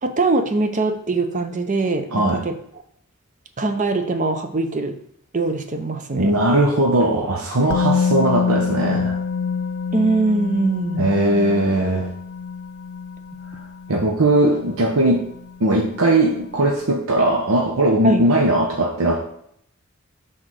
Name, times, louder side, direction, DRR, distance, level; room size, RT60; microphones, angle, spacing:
voice 1, 0.0-2.5 3.6-5.0 5.3-6.3 9.9-11.2 18.0-18.2, right 3 dB, 35° right, 7 dB, 0.6 m, -22 dB
voice 2, 2.1-2.4 6.2-9.2 11.0-12.1 13.9-15.3 15.6-19.3, right 1 dB, 75° right, 0 dB, 0.9 m, -19 dB
Musical instrument, 7.7-15.6 15.9-16.0, left 6 dB, 90° left, 0.4 m, -26 dB
5.8 x 3.9 x 6.2 m, 0.69 s
head